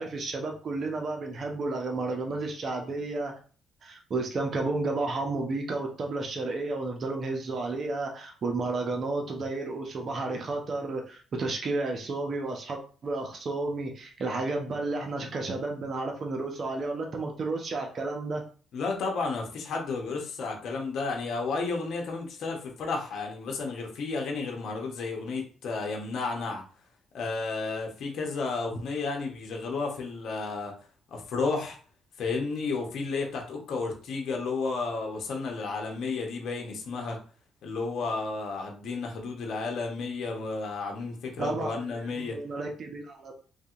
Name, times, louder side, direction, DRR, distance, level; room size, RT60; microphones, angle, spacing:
voice 1, 0.0-3.3 3.8-18.4 41.4-43.3, right 3 dB, 50° right, 2 dB, 0.7 m, -32 dB
voice 2, 18.7-26.6 27.1-30.7 31.1-31.8 32.2-37.2 37.6-42.4, left 4 dB, 70° left, 1 dB, 0.9 m, -32 dB
3.4 x 2.7 x 2.4 m, 0.39 s
cardioid pair, 90°, 0 cm